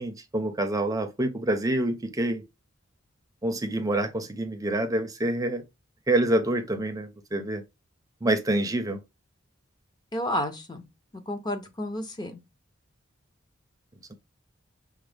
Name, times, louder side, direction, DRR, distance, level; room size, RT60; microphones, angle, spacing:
voice 1, 0.0-2.4 3.4-5.6 6.1-7.6 8.2-9.0, right 1 dB, 20° right, 0.5 m, -27 dB
voice 2, 10.1-10.8 11.3-12.4, left 1 dB, 20° left, 0.6 m, -31 dB
6.0 x 2.1 x 3.3 m
head